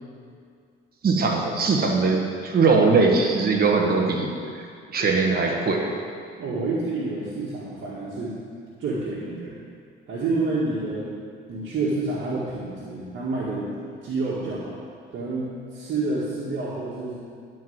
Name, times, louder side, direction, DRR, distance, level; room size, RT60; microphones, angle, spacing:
voice 1, 1.0-4.3 4.9-5.9, right 4 dB, 50° right, 0 dB, 1.5 m, -20 dB
voice 2, 6.4-8.4 8.8-9.6 10.1-11.2 11.5-13.7 14.0-14.8 15.1-17.2, right 3 dB, 70° right, -7 dB, 1.9 m, -28 dB
11.5 x 4.7 x 8.0 m, 2.2 s
cardioid pair, 90°, 20 cm